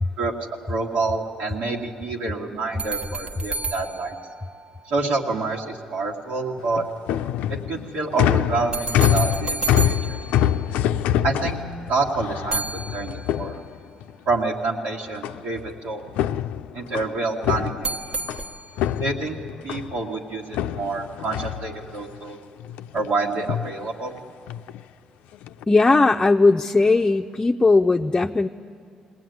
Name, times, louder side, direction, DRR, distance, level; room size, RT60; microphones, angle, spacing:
voice 1, 0.2-4.2 4.9-6.8 7.7-10.2 11.2-11.6 11.9-13.6 14.3-16.0 16.7-18.0 19.0-19.4 19.6-22.4 22.9-24.2, right 3 dB, 80° right, -2 dB, 2.0 m, -27 dB
sound 1, 2.8-5.2 8.7-11.2 12.5-13.7 17.8-19.1, right 3 dB, 40° right, 1.2 m, -32 dB
sound 2, 6.6-14.1 15.2-15.7 16.0-18.5 18.8-20.0 20.5-22.2 22.6-23.1 23.4-23.7 24.5-24.8 25.3-25.6, left 11 dB, 85° left, 0.4 m, -25 dB
voice 2, 25.7-28.5, left 3 dB, 20° left, 3 dB, 0.6 m, -18 dB
20.0 x 19.0 x 9.4 m, 2.3 s
supercardioid pair, 70°, 2 cm